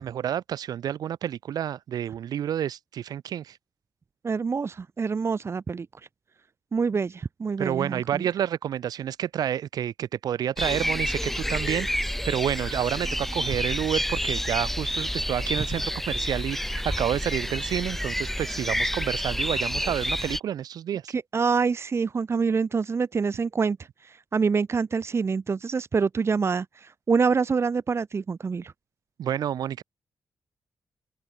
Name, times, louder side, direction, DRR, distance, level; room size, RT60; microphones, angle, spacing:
voice 1, 0.0-3.6 7.6-21.1 29.2-29.8, right 10 dB, 85° right, 4.0 m, -29 dB
voice 2, 4.2-5.9 6.7-8.3 21.1-23.8 24.1-28.7, right 5 dB, 40° right, 1.3 m, -26 dB
sound 1, 10.6-20.4, equal, 5° left, 6.5 m, -29 dB
open air
cardioid pair, 80°, 6 cm